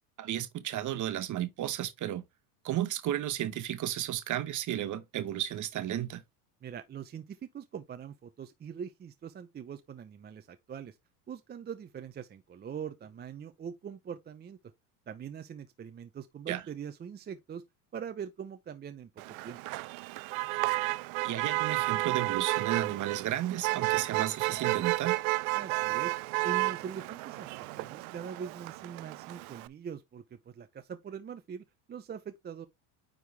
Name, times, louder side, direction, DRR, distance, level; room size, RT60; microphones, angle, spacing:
voice 1, 0.2-2.2 2.6-6.2 16.5-16.6 21.2-25.2, right 12 dB, 40° right, 1.2 m, -33 dB
voice 2, 6.6-11.0 11.3-14.6 15.1-17.6 17.9-19.1 19.4-19.6 25.5-26.1 26.4-32.7, right 7 dB, 20° right, 0.7 m, -42 dB
Motor vehicle (road), 19.2-29.7, right 23 dB, 65° right, 0.6 m, -32 dB
9.7 x 3.8 x 3.3 m
supercardioid pair, 110°, 46 cm